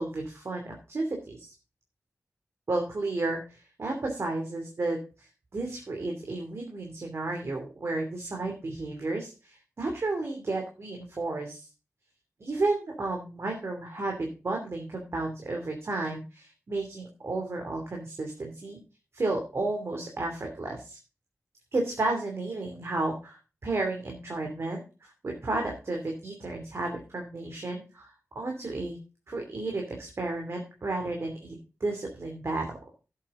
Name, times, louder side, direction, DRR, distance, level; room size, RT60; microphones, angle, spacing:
voice 1, 0.0-1.5 2.7-11.7 12.4-18.8 19.1-21.0 21.7-29.0 29.3-32.8, right 2 dB, 55° right, 1 dB, 2.7 m, -32 dB
13.0 x 8.1 x 3.7 m, 0.32 s
wide cardioid pair, 85°, 5 cm